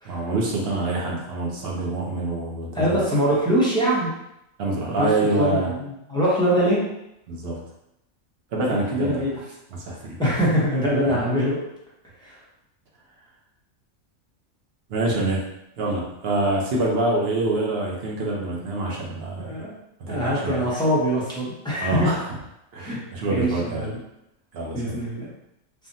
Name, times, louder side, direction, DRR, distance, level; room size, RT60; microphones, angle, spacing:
voice 1, 0.1-3.0 4.6-5.7 7.3-7.6 8.5-9.2 9.7-10.2 11.0-11.2 14.9-15.5 15.8-19.6 20.0-20.7 21.8-22.2 22.7-23.9 24.5-25.0, right 2 dB, 55° right, -2 dB, 0.8 m, -26 dB
voice 2, 2.7-4.1 4.9-6.8 8.7-9.3 10.2-11.6 12.2-12.4 19.4-19.7 20.1-22.1 22.8-23.0 23.3-24.0 24.7-25.3, equal, 5° left, -8 dB, 0.6 m, -23 dB
3.4 x 2.1 x 2.6 m, 0.84 s
omnidirectional pair, 1.4 m